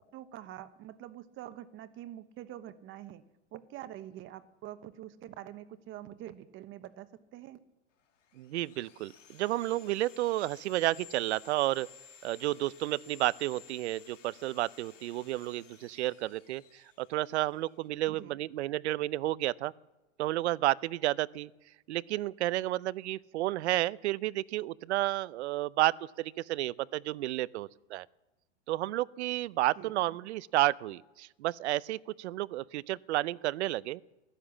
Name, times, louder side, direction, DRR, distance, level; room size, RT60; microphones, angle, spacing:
voice 1, 0.1-3.2 3.5-7.6 18.1-18.4 29.8-30.2, right 12 dB, 35° right, 13 dB, 1.1 m, -46 dB
Sawing, 8.0-17.9, left 9 dB, 85° left, 2.7 m, -56 dB
voice 2, 8.4-11.9 12.2-19.7 20.2-21.5 21.9-28.1 28.7-34.0, right 16 dB, 65° right, 22 dB, 0.6 m, -31 dB
15.5 x 12.5 x 7.2 m, 1.0 s
hypercardioid pair, 120°, 36 cm